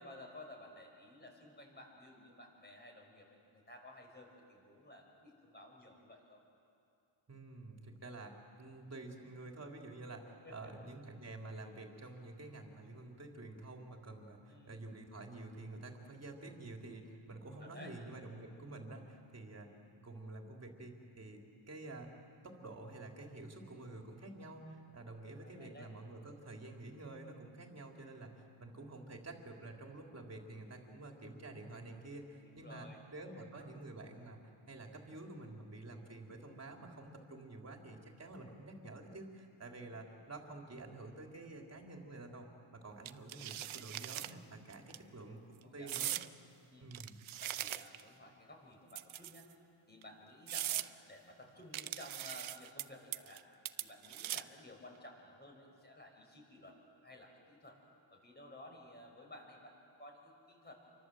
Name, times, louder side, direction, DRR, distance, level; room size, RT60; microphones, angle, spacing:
voice 1, 0.0-6.4 10.4-10.7 14.5-14.8 17.6-17.9 25.3-25.9 32.4-33.7 39.9-40.1 44.9-45.3 45.6-45.9 46.7-46.9 47.4-49.5 49.9-53.4 53.8-56.8 57.0-57.8 58.1-60.7, left 1 dB, 20° left, 1 dB, 6.3 m, -55 dB
voice 2, 7.3-19.7 20.0-22.1 22.4-42.5 42.7-45.4 45.7-46.1 46.8-47.2, right 2 dB, 30° right, 1 dB, 3.7 m, -49 dB
sound 1, 43.1-44.3 44.7-45.0 45.9-46.3 46.9-48.1 48.9-49.5 50.0-50.1 50.5-50.9 51.7-52.8 53.1-53.4 53.7-54.6, right 13 dB, 70° right, 0.8 m, -40 dB
29.0 x 24.5 x 7.9 m, 2.5 s
cardioid pair, 115°, 50 cm